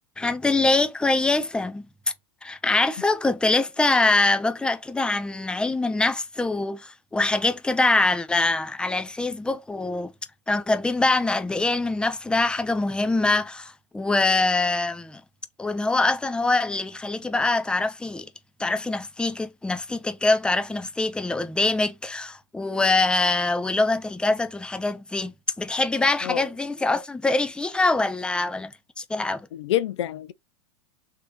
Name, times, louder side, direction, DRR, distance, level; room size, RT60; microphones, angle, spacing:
voice 1, 0.2-1.9 2.4-10.1 10.5-15.2 15.6-18.3 18.6-29.5, left 2 dB, 5° left, 0.5 m, -24 dB
voice 2, 29.5-30.3, left 13 dB, 75° left, 0.4 m, -27 dB
3.6 x 3.3 x 2.9 m
hypercardioid pair, 90°, 15 cm